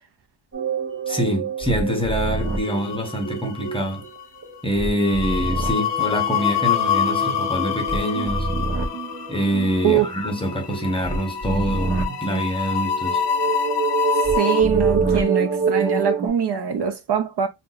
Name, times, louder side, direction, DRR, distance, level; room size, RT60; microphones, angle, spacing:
sound 1, 0.5-4.1 4.4-16.3, right 4 dB, 30° right, 1.1 m, -26 dB
voice 1, 1.1-4.1 4.6-8.5 9.3-13.2, equal, 10° left, 0.7 m, -25 dB
sound 2, 2.6-3.3 3.6-3.9 5.1-14.6, left 8 dB, 60° left, 0.5 m, -26 dB
voice 2, 14.4-17.5, right 8 dB, 55° right, 0.6 m, -23 dB
2.6 x 2.2 x 3.8 m
wide cardioid pair, 160°, 47 cm